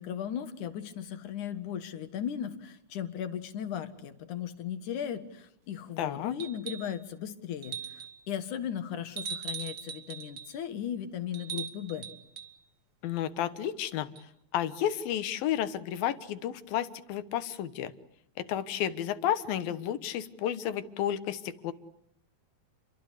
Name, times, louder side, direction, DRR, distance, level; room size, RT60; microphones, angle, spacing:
voice 1, 0.0-12.1, left 9 dB, 65° left, 10 dB, 2.9 m, -37 dB
voice 2, 6.0-6.3 13.0-14.1 14.5-17.9 18.4-21.7, left 10 dB, 80° left, 12 dB, 3.1 m, -32 dB
sound 1, 6.4-7.0 7.6-8.2 9.2-10.5 11.3-12.5 14.2-14.3, right 7 dB, 45° right, 1.7 m, -40 dB
30.0 x 23.5 x 8.4 m, 0.74 s
omnidirectional pair, 4.1 m